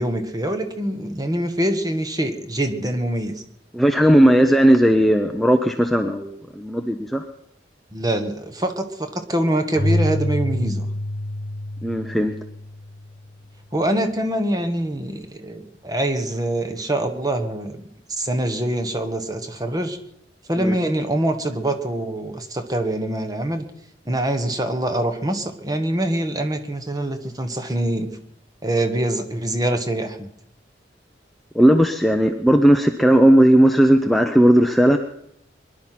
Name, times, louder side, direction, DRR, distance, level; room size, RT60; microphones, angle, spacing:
voice 1, 0.0-3.4 7.9-10.9 13.7-17.8 18.1-20.0 20.5-23.6 24.0-28.1 28.6-30.3, right 1 dB, 20° right, 8 dB, 1.3 m, -24 dB
voice 2, 3.7-7.2 11.8-12.3 20.6-20.8 31.5-35.0, equal, ahead, 5 dB, 0.6 m, -16 dB
Keyboard (musical), 9.8-13.3, left 1 dB, 65° left, 1.2 m, -26 dB
22.5 x 11.0 x 5.9 m, 0.76 s
head